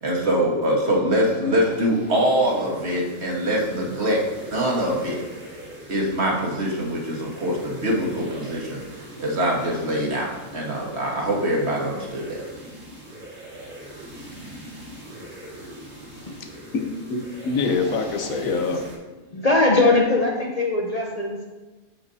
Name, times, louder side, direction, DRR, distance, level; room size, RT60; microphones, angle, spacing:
voice 1, 0.0-4.2 4.5-5.2 5.9-8.8 9.2-12.4, equal, 55° right, -2 dB, 1.7 m, -23 dB
sound 1, 1.3-19.0, right 1 dB, 75° right, 2.3 m, -41 dB
voice 2, 16.1-16.8 17.1-17.2 17.4-18.8, left 4 dB, 85° left, 5 dB, 1.2 m, -25 dB
voice 3, 19.3-21.5, left 2 dB, 40° left, -2 dB, 0.6 m, -20 dB
7.3 x 7.0 x 2.7 m, 1.2 s
omnidirectional pair, 1.4 m